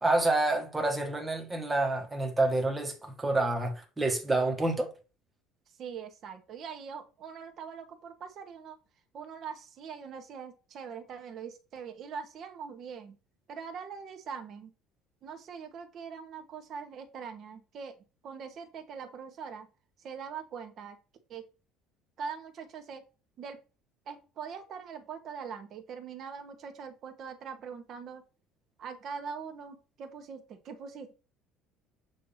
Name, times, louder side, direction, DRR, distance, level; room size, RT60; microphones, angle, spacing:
voice 1, 0.0-4.9, right 2 dB, 10° right, 1.2 m, -28 dB
voice 2, 5.8-8.8 9.1-13.2 13.5-14.7 15.2-18.0 18.2-19.7 20.0-21.0 21.3-21.4 22.2-23.0 23.4-23.6 24.1-28.2 28.8-31.1, right 6 dB, 35° right, 1.0 m, -42 dB
7.2 x 2.8 x 5.5 m
cardioid pair, 170°, 0 cm